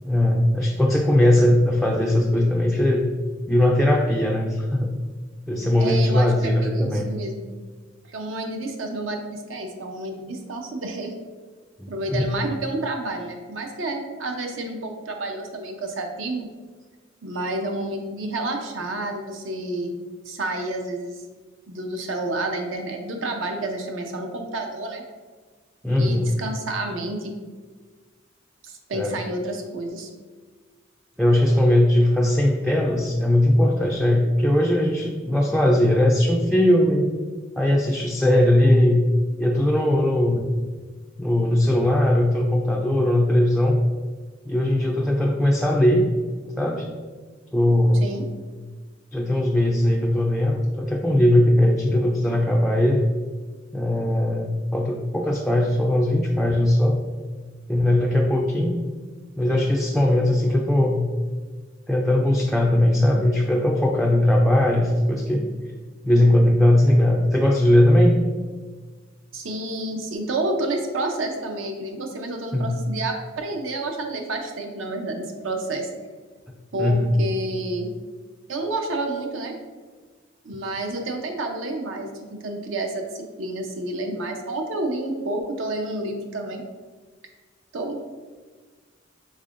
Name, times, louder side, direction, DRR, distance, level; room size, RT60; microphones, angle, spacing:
voice 1, 0.0-3.1 3.5-4.9 5.5-7.1 11.8-12.3 25.8-26.3 28.9-29.2 31.2-37.1 37.6-39.0 39.4-40.5 41.2-43.8 44.5-46.1 46.6-46.9 47.5-48.2 49.1-53.0 53.7-57.0 57.7-58.8 59.4-61.0 61.9-65.4 66.0-68.2 72.5-72.7 76.8-77.1, left 1 dB, ahead, -1 dB, 0.3 m, -19 dB
voice 2, 5.8-7.5 8.1-11.1 11.9-16.5 17.2-20.0 20.3-21.2 21.7-25.0 26.0-27.3 28.6-30.1 48.0-48.3 69.3-75.9 76.7-77.9 78.5-79.6 80.4-86.6 87.7-88.1, right 2 dB, 75° right, 3 dB, 0.6 m, -29 dB
5.3 x 3.7 x 2.5 m, 1.5 s
head